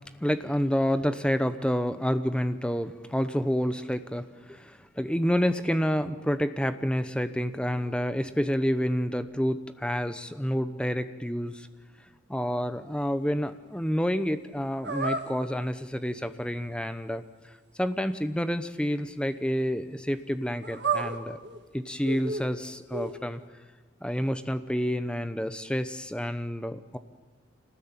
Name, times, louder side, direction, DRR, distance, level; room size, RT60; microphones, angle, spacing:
voice 1, 0.2-11.7 12.3-17.2 17.8-21.4 21.7-23.4 24.0-27.0, equal, 5° left, 10 dB, 0.9 m, -29 dB
sound 1, 14.8-15.3 20.6-21.6 22.0-22.5 22.9-23.1, right 4 dB, 60° right, 2.1 m, -31 dB
26.0 x 19.0 x 8.9 m, 1.3 s
head